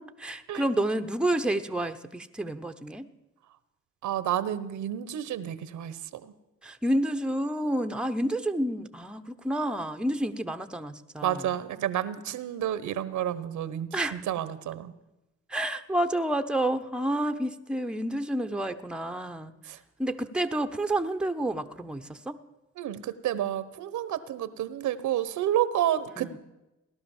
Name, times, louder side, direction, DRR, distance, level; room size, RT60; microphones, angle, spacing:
voice 1, 0.0-3.1 6.6-11.4 13.9-14.2 15.5-19.5 20.0-22.4 26.2-26.4, right 1 dB, 5° right, 7 dB, 0.9 m, -29 dB
voice 2, 4.0-6.3 11.2-14.9 19.7-19.8 22.8-26.4, right 11 dB, 75° right, 15 dB, 1.1 m, -30 dB
17.5 x 11.5 x 7.2 m, 0.97 s
cardioid pair, 90°, 30 cm